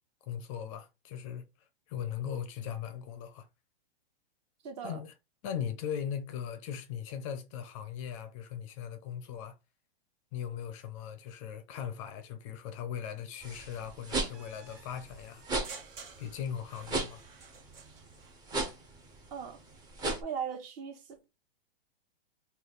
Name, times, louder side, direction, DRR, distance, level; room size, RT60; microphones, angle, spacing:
voice 1, 0.3-3.5 4.8-5.1 5.4-9.6 10.3-15.4 16.2-17.2, left 8 dB, 35° left, 0.4 m, -39 dB
voice 2, 4.6-5.0 19.3-19.6 20.2-21.2, right 7 dB, 45° right, 1.0 m, -38 dB
sound 1, 13.4-20.2, right 2 dB, 15° right, 0.6 m, -36 dB
sound 2, 14.3-18.4, right 5 dB, 65° right, 1.1 m, -51 dB
3.2 x 2.3 x 3.9 m
hypercardioid pair, 130°, 30 cm